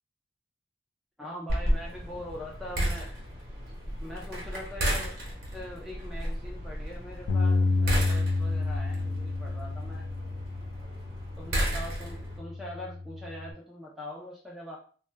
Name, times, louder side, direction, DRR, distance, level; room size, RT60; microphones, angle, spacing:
voice 1, 1.2-3.1 4.0-5.2 5.5-10.1 11.4-14.8, left 1 dB, ahead, -4 dB, 0.3 m, -42 dB
sound 1, 1.5-12.4, right 1 dB, 50° right, 0.8 m, -33 dB
Bass guitar, 7.3-13.5, left 3 dB, 85° left, 0.3 m, -30 dB
2.1 x 2.1 x 3.2 m, 0.42 s
head